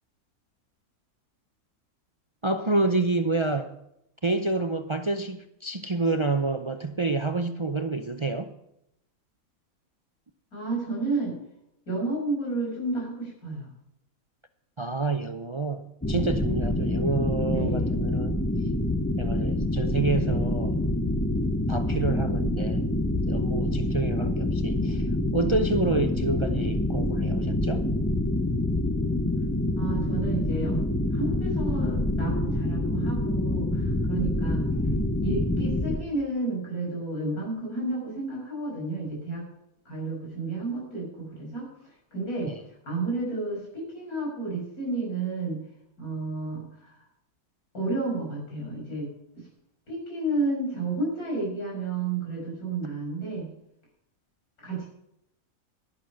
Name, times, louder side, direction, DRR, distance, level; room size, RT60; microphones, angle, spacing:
voice 1, 2.4-3.8 4.2-8.5 14.8-18.4 19.2-20.8 21.7-22.8 23.3-25.1 25.3-27.9 42.5-42.6, right 3 dB, 45° right, 0.4 m, -28 dB
voice 2, 10.5-11.4 11.9-13.7 17.5-17.9 29.7-30.8 31.1-34.6 35.2-39.5 39.8-41.7 42.1-42.5 42.8-45.6 46.0-47.0 47.7-49.4 49.9-53.5 54.6-54.9, right 2 dB, 90° left, 6.8 m, -31 dB
sound 1, 16.0-36.0, left 1 dB, 10° left, 0.7 m, -26 dB
11.5 x 11.5 x 5.8 m
omnidirectional pair, 1.5 m